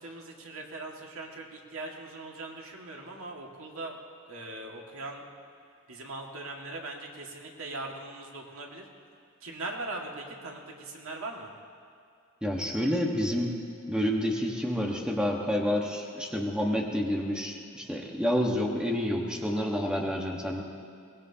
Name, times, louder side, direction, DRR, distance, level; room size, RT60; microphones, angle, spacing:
voice 1, 0.0-4.0 4.3-5.2 5.9-8.9 9.4-11.5, right 2 dB, 85° right, 0 dB, 2.0 m, -40 dB
voice 2, 12.4-13.6 13.9-20.6, equal, 5° right, 0 dB, 1.4 m, -29 dB
22.5 x 19.5 x 2.9 m, 2.4 s
head